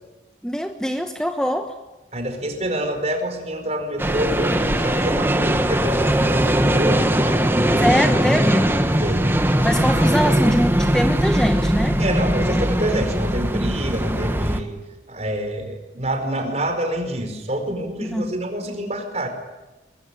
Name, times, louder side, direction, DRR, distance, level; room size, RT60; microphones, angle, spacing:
voice 1, 0.4-1.8 7.8-8.8 9.6-12.0 18.0-18.3, equal, 5° left, 6 dB, 1.1 m, -23 dB
voice 2, 2.1-7.5 9.0-9.4 9.8-9.9 10.2-10.5 12.0-14.8 15.1-19.3, right 1 dB, 40° right, 5 dB, 4.9 m, -27 dB
sound 1, 4.0-14.6, right 1 dB, 10° right, 1.5 m, -20 dB
22.5 x 22.0 x 10.0 m, 1.1 s
head